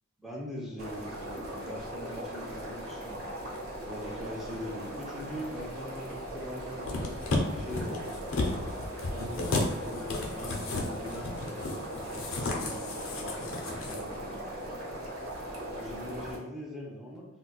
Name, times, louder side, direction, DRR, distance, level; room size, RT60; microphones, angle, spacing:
voice 1, 0.2-3.6 3.9-7.2 7.5-8.3 9.1-15.0 15.7-17.3, left 1 dB, ahead, -3 dB, 0.5 m, -42 dB
sound 1, 0.8-16.4, right 1 dB, 85° right, 0.8 m, -39 dB
sound 2, 6.8-14.0 14.3-14.4, left 2 dB, 75° left, 0.6 m, -33 dB
3.9 x 2.2 x 2.3 m, 1.0 s
head